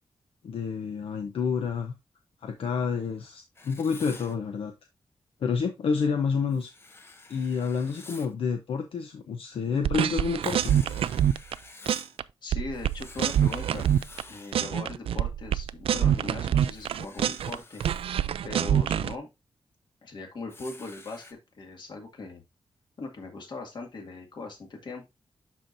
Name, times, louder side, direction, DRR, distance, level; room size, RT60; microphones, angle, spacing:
voice 1, 0.4-1.9 2.4-4.7 5.4-6.7 7.3-10.8, left 5 dB, 75° left, 5 dB, 0.8 m, -29 dB
Writing, 3.5-4.3 6.5-8.3 10.4-12.2 12.7-14.6 16.5-18.1 20.5-21.3, left 2 dB, 25° left, 0.9 m, -49 dB
sound 1, 9.8-11.5 11.9-12.2 12.5-14.2 14.5-17.6 17.8-19.1, right 10 dB, 80° right, 0.4 m, -25 dB
voice 2, 12.4-13.9 14.3-17.8 18.4-19.3 20.0-22.4 23.0-25.1, left 3 dB, 50° left, 2 dB, 2.1 m, -39 dB
11.5 x 4.5 x 2.6 m, 0.23 s
wide cardioid pair, 165°, 10 cm